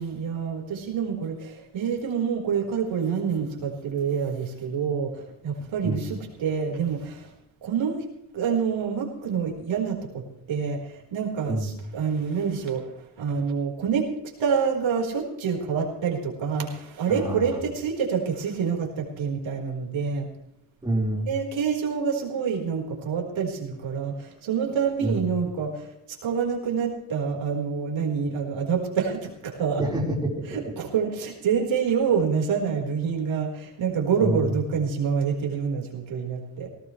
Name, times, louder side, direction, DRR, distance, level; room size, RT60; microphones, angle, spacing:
voice 1, 0.0-7.3 7.6-8.0 8.3-10.2 10.5-14.1 14.4-20.3 21.2-29.8 30.5-36.7, right 6 dB, 75° right, 0 dB, 4.6 m, -27 dB
voice 2, 17.1-17.6 20.8-21.3 25.0-25.2 29.8-30.5 34.2-34.5, right 1 dB, 10° right, -3 dB, 4.5 m, -27 dB
19.0 x 18.0 x 3.3 m, 0.80 s
cardioid pair, 145°, 47 cm